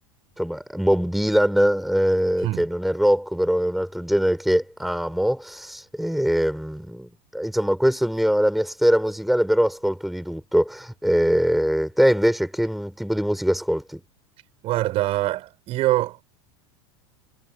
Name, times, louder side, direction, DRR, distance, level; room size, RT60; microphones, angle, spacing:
voice 1, 0.4-14.0, equal, ahead, 4.1 m, -22 dB
voice 2, 14.6-16.2, right 16 dB, 45° right, 6.7 m, -24 dB
supercardioid pair, 120°, 13 cm